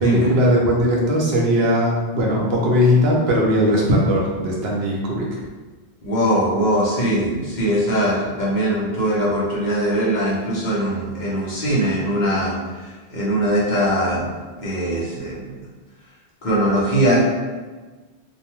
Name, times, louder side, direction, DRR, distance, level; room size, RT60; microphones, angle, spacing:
voice 1, 0.0-5.3, equal, 75° right, -2 dB, 0.9 m, -18 dB
voice 2, 6.0-14.2 14.6-15.5 16.4-17.2, right 1 dB, 50° left, -6 dB, 0.8 m, -21 dB
2.7 x 2.1 x 2.9 m, 1.3 s
omnidirectional pair, 1.1 m